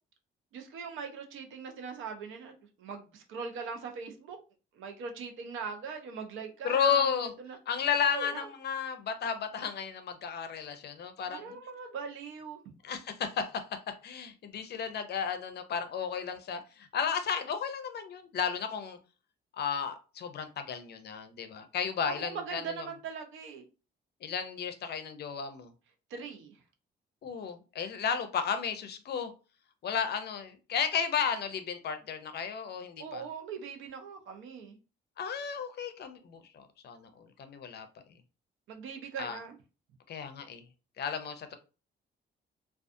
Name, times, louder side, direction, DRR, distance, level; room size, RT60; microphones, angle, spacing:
voice 1, 0.5-2.5 2.8-4.4 4.7-7.1 7.4-7.6 8.1-8.5 11.3-12.7 22.0-23.6 26.1-26.6 33.0-34.8 38.7-39.6, right 5 dB, 80° right, 0.6 m, -41 dB
voice 2, 6.6-7.3 7.7-11.6 12.8-19.0 19.5-22.8 24.2-25.7 27.2-29.3 29.8-33.2 35.2-37.9 39.2-39.4 40.1-40.6 41.0-41.6, left 7 dB, 55° left, 0.5 m, -33 dB
2.4 x 2.3 x 2.5 m
cardioid pair, 90°, 20 cm